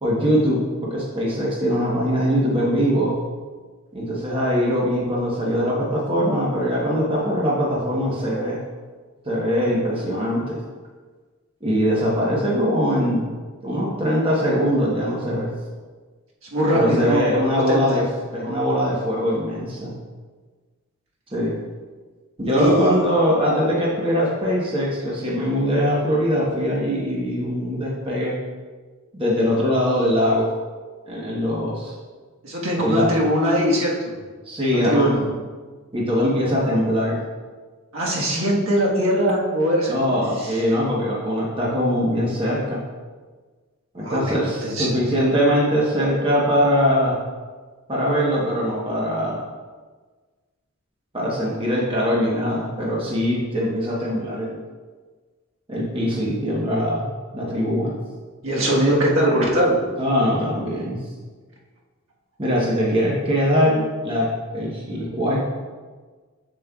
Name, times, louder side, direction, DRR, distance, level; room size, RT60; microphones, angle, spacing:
voice 1, 0.0-3.2 3.9-8.6 9.3-10.6 11.6-13.2 13.6-15.5 16.7-19.9 21.3-21.6 22.4-28.4 29.1-30.5 31.1-31.9 32.8-33.1 34.5-35.1 35.9-37.2 39.9-42.8 43.9-47.2 47.9-49.4 51.1-54.6 55.7-57.0 57.3-57.9 60.0-61.0 62.4-65.5, equal, 25° right, -4 dB, 1.1 m, -22 dB
voice 2, 16.5-17.2 17.7-17.8 22.4-22.9 32.4-34.1 34.7-35.3 37.9-40.1 40.4-40.5 44.0-44.4 44.6-44.9 58.4-59.8, equal, 70° right, -4 dB, 1.5 m, -21 dB
7.3 x 7.3 x 2.4 m, 1.4 s
head